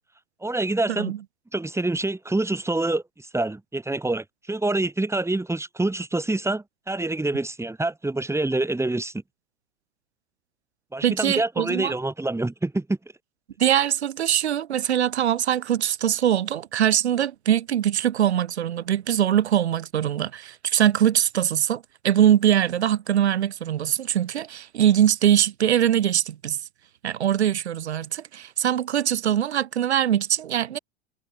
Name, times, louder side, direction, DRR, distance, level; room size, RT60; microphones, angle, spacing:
voice 1, 0.4-1.1 1.5-9.1 10.9-13.0, right 2 dB, 10° right, 7.1 m, -26 dB
voice 2, 11.0-11.9 13.6-26.6 27.0-30.8, right 10 dB, 85° right, 3.1 m, -22 dB
hypercardioid pair, 90°, 32 cm